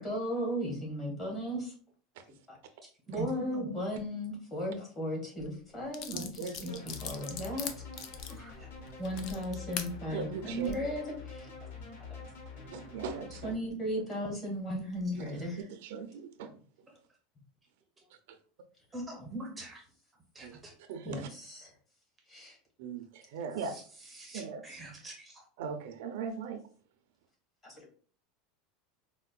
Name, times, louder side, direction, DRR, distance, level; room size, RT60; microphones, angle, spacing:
voice 1, 0.0-1.7 2.5-2.6 3.1-7.7 9.0-11.5 12.9-13.0 13.4-15.6 21.0-21.7 22.3-22.6, equal, 25° left, -1 dB, 1.3 m, -36 dB
voice 2, 3.1-3.7 8.4-8.5 18.9-19.8 20.4-20.7 24.1-25.3, right 2 dB, 15° right, 1 dB, 0.6 m, -42 dB
sound 1, 5.4-5.5 5.9-9.9 10.5-10.7, left 7 dB, 45° left, 0.4 m, -41 dB
voice 3, 6.1-6.8 10.1-10.8 12.7-13.6 15.2-15.3 15.8-16.5 20.4-20.6 20.9-21.3 22.8-23.8 24.3-24.8 25.6-26.6, right 5 dB, 75° right, 8 dB, 0.4 m, -39 dB
sound 2, 6.7-13.5, left 4 dB, 80° left, 1.2 m, -46 dB
4.3 x 2.1 x 2.3 m, 0.43 s
supercardioid pair, 150°, 0 cm